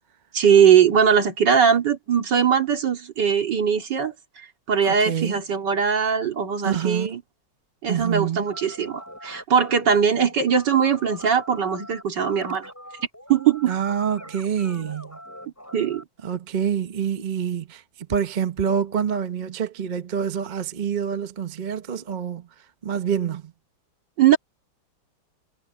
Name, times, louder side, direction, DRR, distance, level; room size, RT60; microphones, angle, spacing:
voice 1, 0.3-4.1 4.7-7.2 7.8-12.7 13.3-13.8 15.7-16.0 24.2-24.4, right 7 dB, 60° right, 3.0 m, -20 dB
voice 2, 4.8-5.4 6.6-7.2 7.9-8.4 13.7-15.2 16.2-17.8 18.1-22.5 22.8-23.5, right 8 dB, 35° right, 0.7 m, -26 dB
sound 1, 8.5-16.0, equal, 5° left, 7.0 m, -43 dB
omnidirectional pair, 2.2 m